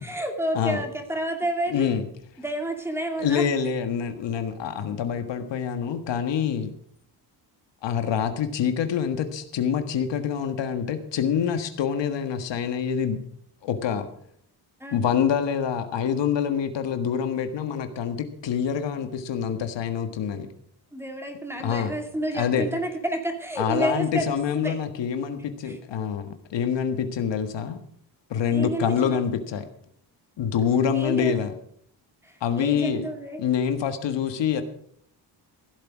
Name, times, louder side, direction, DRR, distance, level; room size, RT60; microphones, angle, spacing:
voice 1, 0.0-1.9 2.4-3.8 14.8-15.0 20.9-24.8 25.6-25.8 28.5-29.2 30.8-31.5 32.2-33.4, right 1 dB, 5° right, 3 dB, 2.6 m, -30 dB
voice 2, 1.7-2.0 3.2-6.7 7.8-13.2 13.6-14.1 14.9-20.5 21.6-21.9 22.3-22.7 23.6-27.8 28.3-29.7 30.4-31.5 32.4-33.0 33.4-34.6, left 8 dB, 80° left, 8 dB, 1.6 m, -26 dB
15.5 x 8.4 x 6.1 m, 0.65 s
cardioid pair, 130°, 43 cm